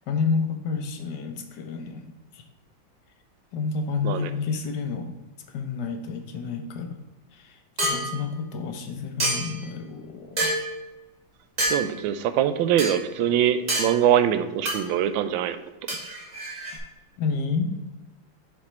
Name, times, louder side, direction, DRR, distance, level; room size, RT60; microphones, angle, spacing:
voice 1, 0.1-2.4 3.5-5.1 5.5-7.0 7.3-10.5 17.2-17.8, left 5 dB, 70° left, 7 dB, 1.2 m, -30 dB
sound 1, 7.8-8.1 9.2-9.6 10.4-10.7 11.6-11.8 12.8-12.9 13.7-13.9 14.7-14.8 15.9-16.8, right 1 dB, 25° right, 1.4 m, -26 dB
voice 2, 11.7-15.6, right 10 dB, 90° right, 11 dB, 1.3 m, -23 dB
6.9 x 5.1 x 4.3 m, 1.1 s
omnidirectional pair, 2.1 m